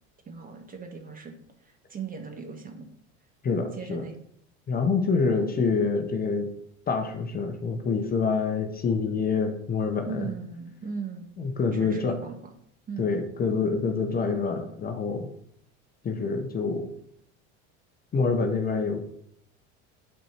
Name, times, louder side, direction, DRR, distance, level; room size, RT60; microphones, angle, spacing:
voice 1, 0.3-1.3 1.6-2.9 3.7-4.2 10.1-11.3 11.7-12.4 12.9-13.1, right 5 dB, 25° right, 4 dB, 1.5 m, -38 dB
voice 2, 3.4-4.0 4.7-6.5 6.9-10.3 11.4-12.2 13.0-15.3 16.0-16.9 18.1-19.0, left 4 dB, 30° left, 5 dB, 1.1 m, -26 dB
7.5 x 4.5 x 5.8 m, 0.68 s
supercardioid pair, 115°, 32 cm